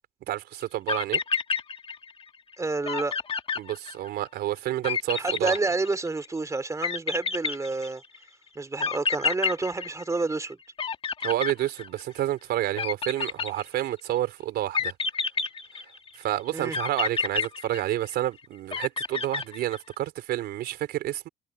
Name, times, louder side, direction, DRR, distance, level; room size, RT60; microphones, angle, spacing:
voice 1, 0.3-1.2 3.6-5.6 11.2-14.9 16.1-21.3, right 13 dB, 75° right, 4.1 m, -29 dB
sound 1, 0.6-0.7 0.9-2.2 2.5-2.6 2.9-4.3 4.8-6.3 6.8-8.2 8.8-10.5 10.8-12.2 12.8-14.0 14.7-16.2 16.7-18.3 18.7-19.9, left 5 dB, 35° left, 1.9 m, -29 dB
voice 2, 2.6-3.2 5.2-8.0 8.5-10.6 16.5-16.8, right 3 dB, 20° right, 3.5 m, -29 dB
cardioid pair, 110°, 17 cm